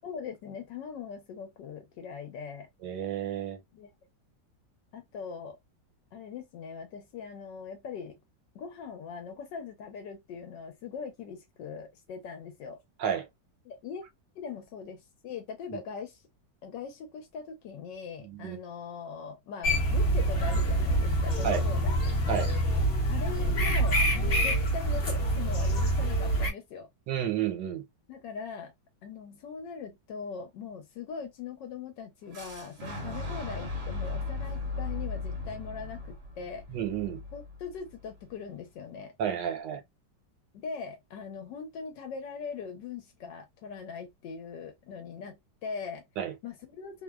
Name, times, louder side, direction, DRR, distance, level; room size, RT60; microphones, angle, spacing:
voice 1, 0.0-2.7 3.7-3.9 4.9-5.6 6.1-8.1 8.5-12.8 13.6-14.0 14.4-16.2 16.6-22.0 23.1-26.9 28.1-28.7 29.0-36.6 37.3-39.1 40.5-46.0 46.4-47.0, left 6 dB, 80° left, 1.3 m, -41 dB
voice 2, 2.8-3.6 13.0-13.3 18.2-18.6 21.4-21.6 22.3-22.5 27.1-27.8 36.7-37.2 39.2-39.8 46.2-46.3, right 9 dB, 80° right, 1.4 m, -31 dB
sound 1, 19.6-26.5, right 1 dB, 45° left, 0.8 m, -26 dB
Boom, 32.3-38.2, left 3 dB, 55° right, 0.9 m, -37 dB
3.1 x 2.1 x 2.2 m
omnidirectional pair, 2.0 m